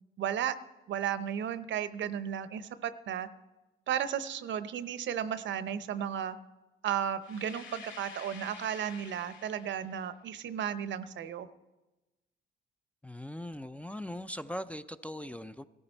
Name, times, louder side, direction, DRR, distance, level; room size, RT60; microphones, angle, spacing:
voice 1, 0.2-0.6 0.9-3.3 3.9-6.4 6.8-11.5, right 9 dB, 70° right, 0.8 m, -34 dB
sound 1, 7.2-10.0, left 5 dB, 70° left, 2.4 m, -49 dB
voice 2, 13.0-15.6, left 1 dB, 5° left, 0.4 m, -40 dB
17.0 x 13.5 x 4.4 m
cardioid pair, 90°, 20 cm